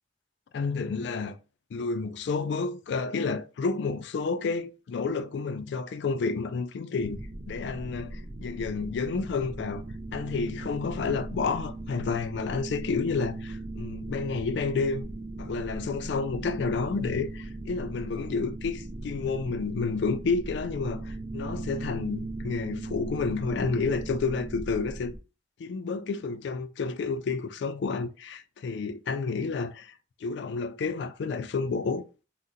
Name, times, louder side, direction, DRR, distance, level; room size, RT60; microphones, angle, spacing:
voice 1, 0.5-1.4 1.7-7.2 7.5-9.8 10.1-15.1 15.4-17.3 17.6-25.1 25.6-29.9 30.2-32.0, left 4 dB, 60° left, 0.3 m, -30 dB
sound 1, 7.0-25.2, right 2 dB, 35° right, 0.4 m, -38 dB
2.7 x 2.1 x 3.6 m
head